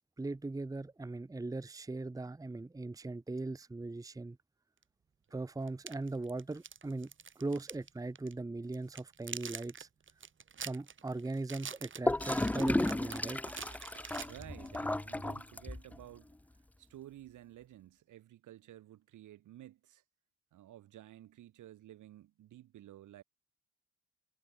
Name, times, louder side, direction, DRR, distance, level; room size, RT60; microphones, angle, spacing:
voice 1, 0.0-4.4 5.3-7.1 7.4-9.9 10.6-13.4, right 2 dB, 10° right, 0.9 m, -39 dB
sound 1, 4.8-4.9 5.7-7.9 8.2-8.3 8.7-14.8, right 6 dB, 40° right, 2.9 m, -46 dB
Gurgling / Toilet flush, 12.1-16.0, left 1 dB, 5° left, 0.4 m, -34 dB
voice 2, 14.2-20.0 20.5-23.2, right 13 dB, 80° right, 7.6 m, -53 dB
cardioid pair, 90°, 30 cm